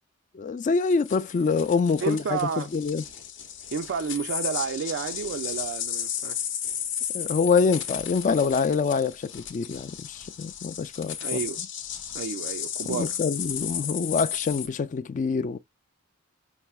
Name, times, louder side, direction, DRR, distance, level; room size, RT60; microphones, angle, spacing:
voice 1, 0.3-3.0 7.1-11.2 12.9-15.6, left 5 dB, 35° left, 0.3 m, -25 dB
sound 1, 0.8-14.7, left 9 dB, 60° left, 0.7 m, -34 dB
voice 2, 2.0-2.7 3.7-6.5 11.2-11.6 12.1-13.2, right 6 dB, 60° right, 0.3 m, -31 dB
5.4 x 2.0 x 2.3 m
head